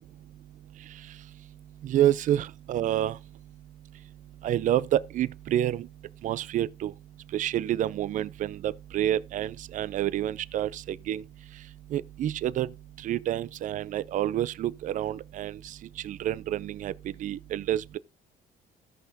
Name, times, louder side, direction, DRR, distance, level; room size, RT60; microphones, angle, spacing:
voice 1, 1.8-3.1 4.4-5.9 6.2-6.9 7.3-11.2 11.9-12.7 13.0-15.6 16.0-16.9 17.2-18.0, right 12 dB, 50° right, 0.4 m, -28 dB
15.5 x 5.6 x 2.7 m
cardioid pair, 110°, 17 cm